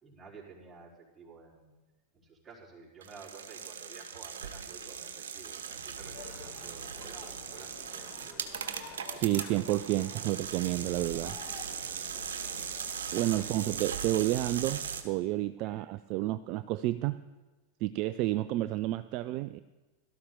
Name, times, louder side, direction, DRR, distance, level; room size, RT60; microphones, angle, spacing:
voice 1, 0.0-1.7 2.1-8.7 11.2-11.4 15.6-15.8, right 4 dB, 10° right, -5 dB, 4.3 m, -52 dB
sound 1, 3.0-15.0, right 7 dB, 65° right, 1.3 m, -39 dB
sound 2, 6.1-14.3, left 7 dB, 35° left, 1.5 m, -51 dB
voice 2, 9.1-11.3 13.1-17.2 17.8-19.6, right 16 dB, 40° right, 14 dB, 0.4 m, -30 dB
17.0 x 13.0 x 3.8 m, 1.2 s
figure-of-eight pair, 90°, 0 cm